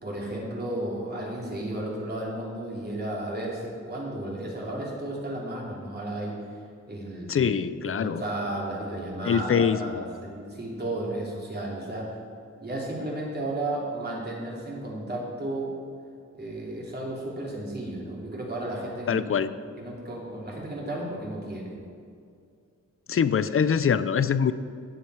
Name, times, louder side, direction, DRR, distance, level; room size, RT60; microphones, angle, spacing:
voice 1, 0.0-6.4 6.9-7.5 7.9-12.2 12.6-15.7 16.4-19.2 19.8-21.7, right 1 dB, 35° right, -4 dB, 3.1 m, -33 dB
voice 2, 7.3-8.2 9.2-10.0 19.1-19.5 23.1-24.5, left 7 dB, 50° left, 14 dB, 0.5 m, -24 dB
16.5 x 7.5 x 4.9 m, 2.3 s
wide cardioid pair, 135°, 29 cm